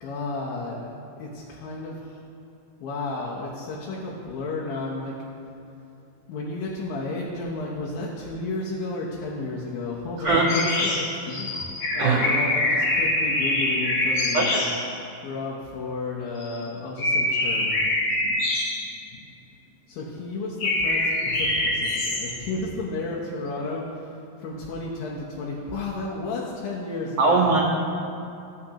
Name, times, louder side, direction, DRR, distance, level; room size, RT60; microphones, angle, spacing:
voice 1, 0.0-2.2 2.8-5.1 6.3-11.6 11.9-14.6 15.2-17.8 19.9-24.1 24.4-27.6, left 2 dB, 90° left, -5 dB, 2.7 m, -32 dB
sound 1, 10.2-14.9 16.4-16.6 17.0-19.2 20.6-22.5, left 2 dB, 65° left, 1.6 m, -25 dB
voice 2, 12.0-12.3 14.3-14.6 27.2-27.6, right 4 dB, 75° right, -3 dB, 2.1 m, -20 dB
14.0 x 5.9 x 2.9 m, 2.7 s
omnidirectional pair, 4.0 m